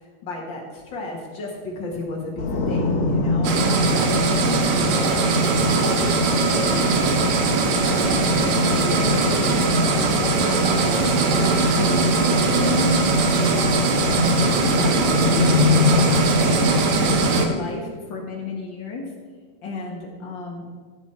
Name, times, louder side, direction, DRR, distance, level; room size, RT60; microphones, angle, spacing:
voice 1, 0.2-5.3 5.8-16.6 17.0-19.0 19.6-20.7, left 2 dB, 80° left, -1 dB, 1.0 m, -33 dB
sound 1, 2.4-17.4, left 2 dB, 60° left, 3.0 m, -24 dB
sound 2, 3.4-17.5, right 4 dB, 80° right, 1.5 m, -21 dB
14.0 x 7.9 x 4.3 m, 1.5 s
omnidirectional pair, 4.5 m